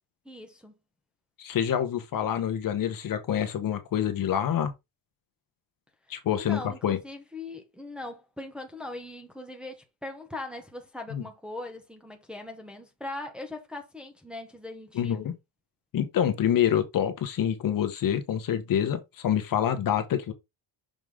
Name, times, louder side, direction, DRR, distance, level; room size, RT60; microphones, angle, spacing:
voice 1, 0.2-0.7 6.1-15.2, left 2 dB, ahead, 0.9 m, -40 dB
voice 2, 1.4-4.7 6.1-7.0 11.1-11.2 14.9-15.3 15.9-20.3, left 9 dB, 45° left, 1.1 m, -27 dB
6.3 x 5.1 x 3.7 m
cardioid pair, 175°, 45 cm